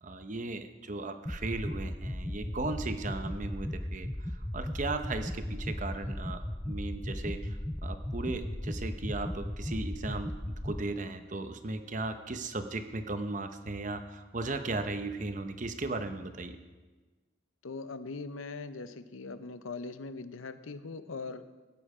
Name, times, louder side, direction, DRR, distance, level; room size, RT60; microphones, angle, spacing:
voice 1, 0.0-16.6, right 2 dB, 40° right, 8 dB, 0.8 m, -36 dB
sound 1, 1.3-10.8, left 1 dB, 5° left, 0.3 m, -36 dB
voice 2, 17.6-21.4, left 3 dB, 90° left, 12 dB, 0.7 m, -41 dB
16.0 x 8.8 x 4.9 m, 1.3 s
head